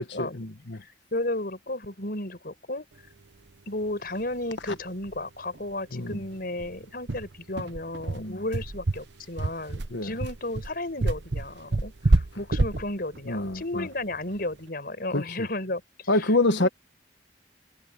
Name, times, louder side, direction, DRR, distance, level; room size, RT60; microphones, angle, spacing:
voice 1, 0.0-0.8 4.7-4.8 5.9-6.2 8.1-8.4 9.9-10.1 13.3-13.9 15.1-15.2 16.1-16.7, left 2 dB, 80° left, 1.5 m, -26 dB
voice 2, 0.8-2.9 3.7-16.7, left 1 dB, 55° left, 5.6 m, -33 dB
sound 1, 4.2-4.3 4.6-4.7 5.0-5.2 5.5-5.6 6.1-14.5, right 2 dB, 70° right, 0.9 m, -28 dB
head